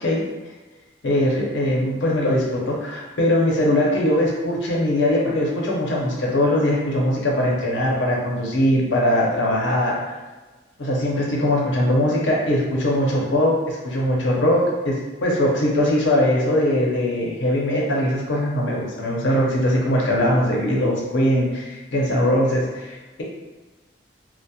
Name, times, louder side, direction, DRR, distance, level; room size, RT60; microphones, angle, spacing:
voice 1, 1.0-10.2 10.8-23.2, left 1 dB, 80° left, -2 dB, 0.6 m, -21 dB
2.7 x 2.0 x 2.2 m, 1.2 s
head